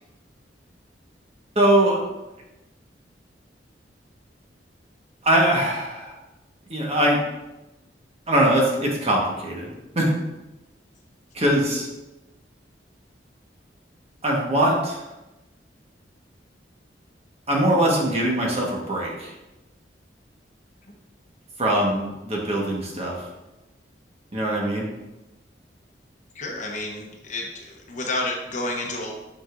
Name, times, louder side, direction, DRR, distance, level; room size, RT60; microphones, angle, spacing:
voice 1, 1.5-2.0 5.2-6.2 6.7-7.2 8.3-10.1 11.3-11.9 14.2-15.0 17.5-19.3 21.6-23.2 24.3-24.9, right 1 dB, 35° right, -2 dB, 1.3 m, -22 dB
voice 2, 26.3-29.1, left 2 dB, 45° left, 1 dB, 0.9 m, -30 dB
7.5 x 5.0 x 2.5 m, 1.0 s
head